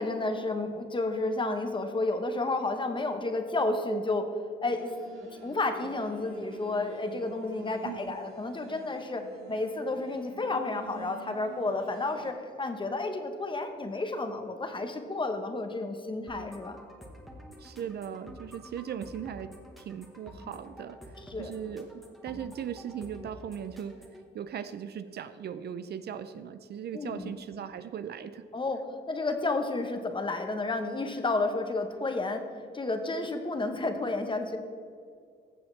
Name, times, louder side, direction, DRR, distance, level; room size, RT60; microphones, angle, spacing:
voice 1, 0.0-4.3 4.6-4.9 5.4-16.8 21.3-21.5 26.9-27.3 28.5-34.6, left 2 dB, 25° left, 6 dB, 1.1 m, -31 dB
sound 1, 4.7-12.3, right 4 dB, 85° right, 1.3 m, -48 dB
sound 2, 16.3-24.3, equal, ahead, 1.5 m, -49 dB
voice 2, 17.6-21.0 21.4-24.0 24.3-28.4, right 8 dB, 55° right, 12 dB, 0.5 m, -38 dB
15.0 x 6.9 x 3.3 m, 2.2 s
cardioid pair, 90°, 20 cm